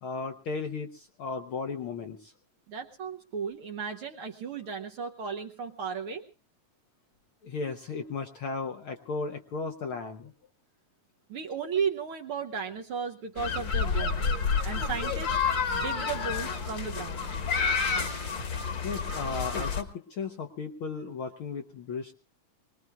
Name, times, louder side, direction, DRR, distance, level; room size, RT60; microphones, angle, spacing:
voice 1, 0.0-2.3 7.4-10.3 18.8-22.1, left 4 dB, 65° left, 5 dB, 1.4 m, -35 dB
voice 2, 2.7-6.2 11.3-14.3 14.6-15.4 15.7-17.3, right 6 dB, 60° right, 3 dB, 1.5 m, -35 dB
sound 1, 13.4-19.8, left 5 dB, 45° left, 1.9 m, -29 dB
23.5 x 20.0 x 2.3 m, 0.35 s
omnidirectional pair, 3.4 m